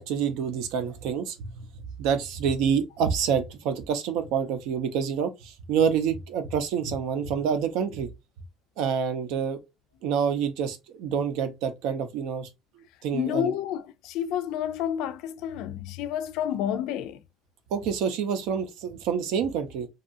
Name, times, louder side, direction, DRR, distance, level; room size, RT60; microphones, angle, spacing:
voice 1, 0.0-1.7 2.0-8.1 8.8-9.6 10.0-12.5 12.8-13.5 17.7-19.9, right 7 dB, 90° right, 0.6 m, -27 dB
voice 2, 13.1-17.2, left 10 dB, 80° left, 0.3 m, -30 dB
2.7 x 2.3 x 2.5 m
cardioid pair, 155°, 0 cm